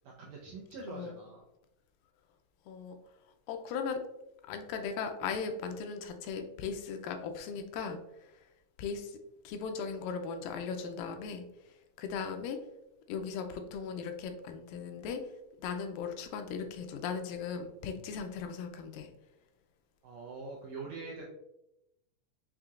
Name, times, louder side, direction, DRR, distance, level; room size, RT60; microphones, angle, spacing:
voice 1, 0.0-1.4 20.0-21.2, right 3 dB, 80° right, -2 dB, 1.6 m, -44 dB
voice 2, 0.9-1.2 2.7-3.0 3.5-4.0 4.5-8.0 8.8-9.2 9.4-11.5 12.0-12.6 13.1-15.2 15.6-19.1, left 6 dB, 85° left, 6 dB, 2.2 m, -38 dB
6.3 x 2.8 x 2.4 m, 0.86 s
omnidirectional pair, 3.8 m